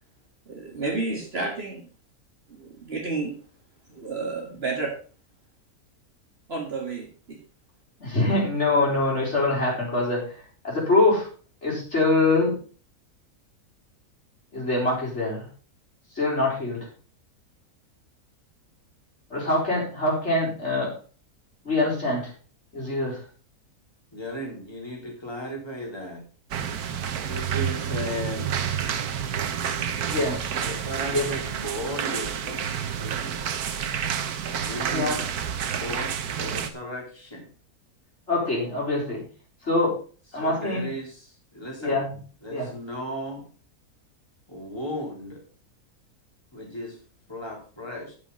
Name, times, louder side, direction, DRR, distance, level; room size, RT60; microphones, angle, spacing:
voice 1, 0.5-1.8 2.5-3.4 3.9-4.9 6.5-7.4, right 3 dB, 45° right, 0 dB, 2.1 m, -31 dB
voice 2, 8.0-11.3 11.6-12.6 14.5-15.5 16.1-16.9 19.3-20.9 21.6-22.3 22.7-23.2 30.1-30.4 31.1-31.3 34.9-35.2 38.3-39.2 39.6-40.0 40.3-40.9 41.8-42.1 42.5-42.7, left 2 dB, 45° left, -4 dB, 4.7 m, -24 dB
voice 3, 24.1-26.2 27.2-28.6 30.5-33.4 34.6-35.2 35.8-37.5 40.4-42.0 42.4-43.5 44.5-45.4 46.5-47.0 47.3-48.1, equal, 15° left, -1 dB, 3.6 m, -35 dB
sound 1, 26.5-36.7, right 8 dB, 90° right, 1.5 m, -29 dB
9.9 x 7.6 x 5.4 m, 0.39 s
omnidirectional pair, 1.6 m